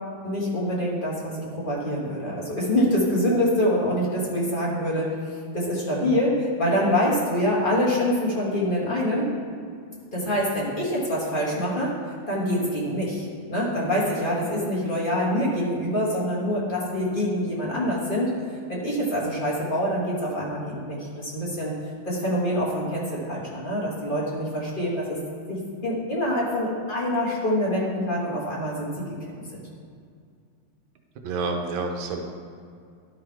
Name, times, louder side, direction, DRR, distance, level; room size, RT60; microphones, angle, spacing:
voice 1, 0.2-9.3 10.1-11.9 12.3-18.3 18.7-21.7 22.0-25.2 25.5-29.1, equal, 30° left, -6 dB, 1.4 m, -25 dB
voice 2, 31.2-32.2, right 3 dB, 90° right, 3 dB, 1.6 m, -28 dB
11.5 x 3.9 x 4.5 m, 2.3 s
omnidirectional pair, 2.1 m